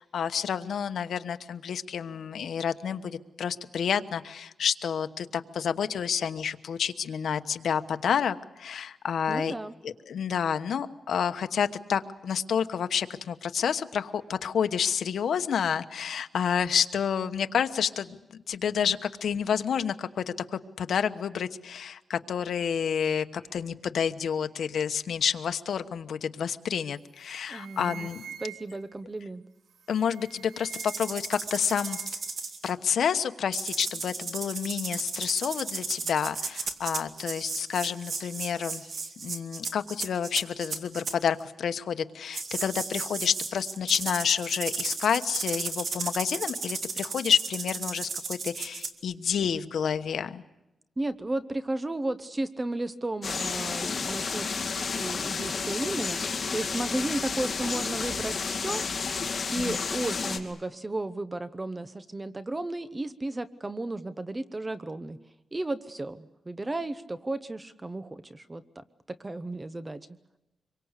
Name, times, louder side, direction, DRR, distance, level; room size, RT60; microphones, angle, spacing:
voice 1, 0.0-9.5 9.8-28.3 29.9-32.0 32.6-38.8 39.2-50.4 59.5-59.8, left 7 dB, 75° left, 9 dB, 1.2 m, -29 dB
voice 2, 9.3-9.7 27.5-28.1 28.4-29.4 51.0-54.7 54.9-56.2 56.5-58.8 59.5-65.2 65.5-70.0, right 2 dB, 20° right, 13 dB, 0.8 m, -34 dB
sound 1, 26.8-27.0 27.3-28.9 29.8-31.2 31.5-32.3, right 9 dB, 75° right, 1.4 m, -46 dB
sound 2, 30.7-32.7 33.5-41.1 42.3-48.9, right 4 dB, 50° right, 2.3 m, -35 dB
sound 3, 53.2-60.4, left 5 dB, 40° left, 2.5 m, -31 dB
26.0 x 23.5 x 8.2 m, 0.98 s
wide cardioid pair, 140°, 0 cm